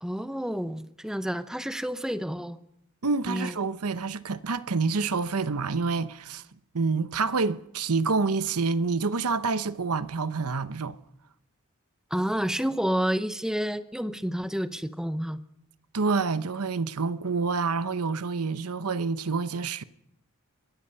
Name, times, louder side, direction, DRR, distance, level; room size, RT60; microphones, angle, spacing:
voice 1, 0.0-2.6 3.3-3.5 12.1-15.4, equal, 5° right, 0.7 m, -29 dB
voice 2, 3.0-6.4 6.7-11.0 15.9-19.8, right 4 dB, 85° right, 0.9 m, -27 dB
25.5 x 21.5 x 5.6 m
head